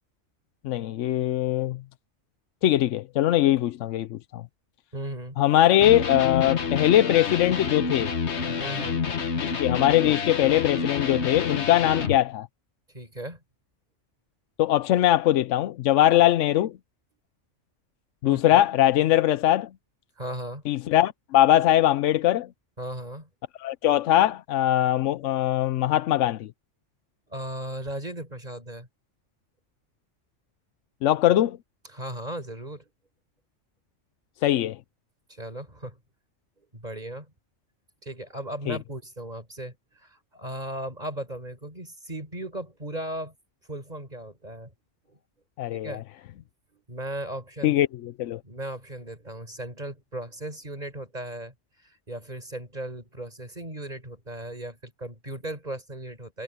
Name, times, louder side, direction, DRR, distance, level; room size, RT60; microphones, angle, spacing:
voice 1, 0.6-1.8 2.6-4.4 5.4-8.1 9.4-12.5 14.6-16.8 18.2-19.7 20.7-22.5 23.6-26.5 31.0-31.6 34.4-34.8 38.7-38.8 45.6-46.0 47.6-48.4, left 13 dB, 85° left, 0.9 m, -21 dB
voice 2, 4.9-5.4 8.6-9.0 12.9-13.4 18.2-18.6 20.2-20.6 22.8-23.3 27.3-28.9 31.9-32.9 35.3-36.0 36.6-37.3 38.0-43.3 43.7-44.7 45.1-45.2 45.7-46.0 46.4-47.8 48.4-56.4, right 1 dB, 35° right, 5.3 m, -37 dB
Electric guitar, 5.8-12.2, left 5 dB, 65° left, 1.5 m, -28 dB
omnidirectional pair, 1.2 m